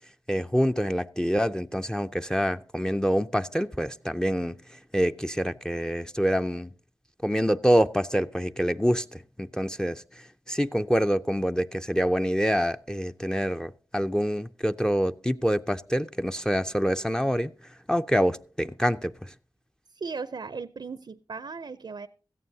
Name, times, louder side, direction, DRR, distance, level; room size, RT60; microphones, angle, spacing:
voice 1, 0.3-6.7 7.2-19.3, equal, 10° left, 0.5 m, -26 dB
voice 2, 19.9-22.1, right 4 dB, 65° right, 0.5 m, -37 dB
17.0 x 14.0 x 2.7 m
wide cardioid pair, 50°, 8 cm